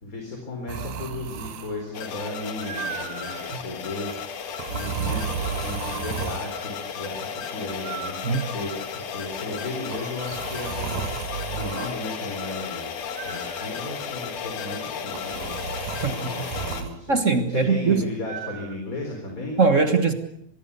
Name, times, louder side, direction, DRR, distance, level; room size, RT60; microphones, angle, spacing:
voice 1, 0.0-4.2 4.7-8.1 8.5-11.2 11.5-12.9 13.2-15.5 16.0-17.2 17.5-19.6, left 2 dB, 25° left, 4.2 m, -35 dB
sound 1, 0.7-1.9 2.6-3.5 4.6-6.6 7.8-8.8 9.9-12.0 13.2-13.9 15.1-17.0 18.3-18.8, right 8 dB, 80° right, 2.6 m, -34 dB
sound 2, 1.9-16.8, left 7 dB, 90° left, 3.4 m, -34 dB
voice 2, 15.9-16.3 17.1-18.0 19.6-20.1, right 4 dB, 35° right, 1.3 m, -21 dB
25.0 x 21.5 x 7.0 m
omnidirectional pair, 3.4 m